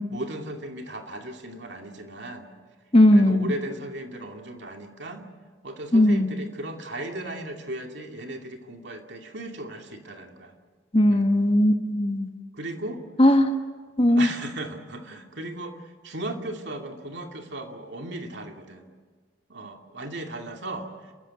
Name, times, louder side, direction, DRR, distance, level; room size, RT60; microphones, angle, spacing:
voice 1, 0.1-2.5 3.1-5.2 5.6-10.5 11.1-11.3 12.5-13.0 14.1-18.9 19.5-21.1, right 1 dB, 60° right, 3 dB, 2.5 m, -36 dB
voice 2, 2.9-3.5 5.9-6.3 10.9-12.3 13.2-13.5 14.0-14.3, left 1 dB, 30° left, 6 dB, 1.4 m, -18 dB
29.5 x 14.5 x 9.3 m, 1.5 s
head